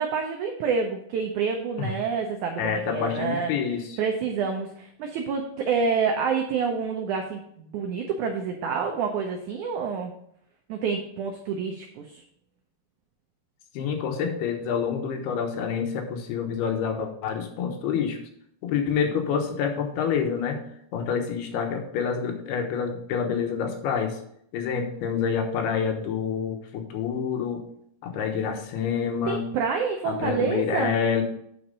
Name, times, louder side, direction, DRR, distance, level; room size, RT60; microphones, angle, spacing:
voice 1, 0.0-3.5 4.0-10.1 10.7-12.2 29.3-31.0, right 5 dB, 80° right, 3 dB, 1.7 m, -28 dB
voice 2, 2.6-4.0 13.7-18.2 18.6-20.6 20.9-24.2 24.5-27.6 28.0-29.4 30.0-31.2, left 6 dB, 85° left, 4 dB, 3.1 m, -27 dB
8.5 x 4.6 x 5.3 m, 0.70 s
omnidirectional pair, 4.5 m